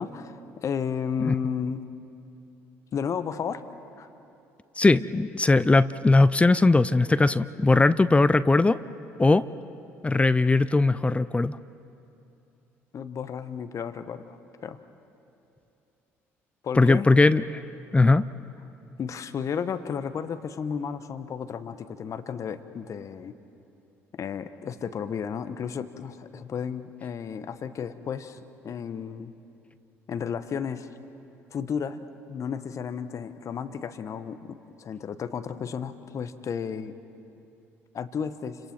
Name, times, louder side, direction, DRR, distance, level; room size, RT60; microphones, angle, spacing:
voice 1, 0.0-1.9 2.9-3.6 4.0-4.1 12.9-14.4 14.6-14.8 16.6-17.1 19.0-23.3 24.1-29.3 30.1-30.9 31.5-36.9 37.9-38.6, left 7 dB, 45° left, 11 dB, 1.2 m, -33 dB
voice 2, 4.8-8.8 9.2-9.4 10.0-11.6 16.8-17.6 17.9-18.2, left 3 dB, 15° left, 16 dB, 0.5 m, -20 dB
29.5 x 26.5 x 4.6 m, 2.7 s
hypercardioid pair, 55°, 7 cm